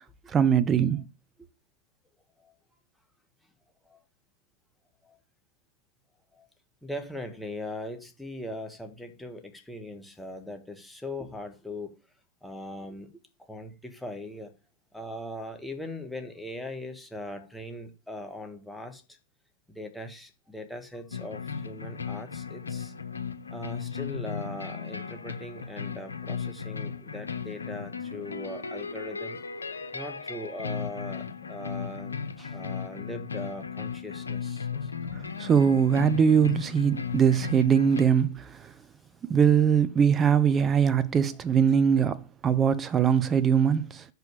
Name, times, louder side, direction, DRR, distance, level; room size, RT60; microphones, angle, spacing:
voice 1, 0.3-1.0 35.1-38.7 39.3-44.1, right 7 dB, 25° right, 0.8 m, -22 dB
voice 2, 6.8-12.0 12.4-13.1 13.4-14.5 14.9-19.2 19.7-22.9 23.5-29.4 29.9-34.9, left 1 dB, 5° left, 1.5 m, -40 dB
sound 1, 21.1-38.0, left 6 dB, 75° left, 0.7 m, -36 dB
6.1 x 5.4 x 6.7 m
figure-of-eight pair, 90°, 0 cm